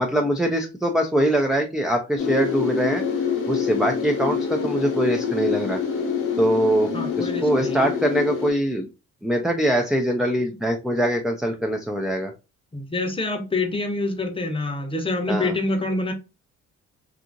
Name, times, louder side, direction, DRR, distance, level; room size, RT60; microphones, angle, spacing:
voice 1, 0.0-3.0 3.5-5.8 6.4-8.9 9.2-12.3 15.3-15.5, equal, ahead, 0.3 m, -23 dB
sound 1, 2.2-8.5, left 6 dB, 50° left, 0.8 m, -26 dB
voice 2, 6.9-7.8 12.7-16.1, left 2 dB, 20° left, 0.7 m, -26 dB
2.7 x 2.5 x 2.5 m
cardioid pair, 90°, 30 cm